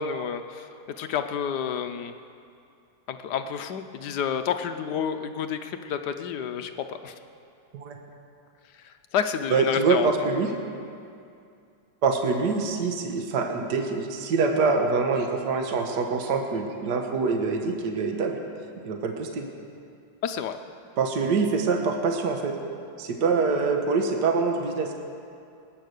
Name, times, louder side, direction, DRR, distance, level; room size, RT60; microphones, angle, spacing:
voice 1, 0.0-2.1 3.1-7.1 8.8-10.1 20.2-20.6, left 7 dB, 65° left, 8 dB, 1.1 m, -30 dB
voice 2, 9.5-10.5 12.0-18.4 18.8-19.5 21.0-22.5 23.0-24.9, right 4 dB, 60° right, 3 dB, 1.7 m, -25 dB
20.5 x 9.2 x 6.6 m, 2.5 s
omnidirectional pair, 2.2 m